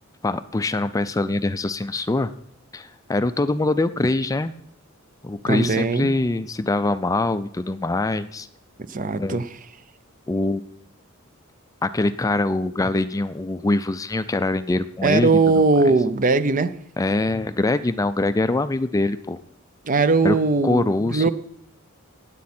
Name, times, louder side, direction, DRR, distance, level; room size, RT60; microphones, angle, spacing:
voice 1, 0.2-2.3 2.7-4.5 5.2-8.5 9.2-9.4 10.3-10.6 11.8-15.6 17.0-19.4 20.2-20.4 20.6-21.3, left 2 dB, 15° left, 0.4 m, -23 dB
voice 2, 5.5-6.1 8.9-9.5 15.0-16.7 19.8-21.3, right 3 dB, 40° right, 0.6 m, -20 dB
19.0 x 8.4 x 4.3 m
head